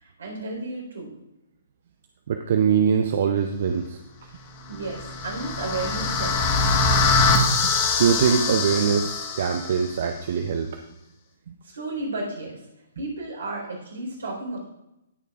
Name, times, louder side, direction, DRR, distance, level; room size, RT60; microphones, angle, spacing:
voice 1, 0.0-1.2 4.7-6.7 11.6-12.6 13.0-14.6, right 2 dB, 70° right, -2 dB, 4.3 m, -33 dB
voice 2, 2.3-4.0 8.0-10.7 11.5-11.6, right 7 dB, 50° right, 6 dB, 0.7 m, -22 dB
sound 1, 4.7-9.8, left 3 dB, 35° left, 1.5 m, -23 dB
19.0 x 6.7 x 2.5 m, 0.89 s
figure-of-eight pair, 125°, 0 cm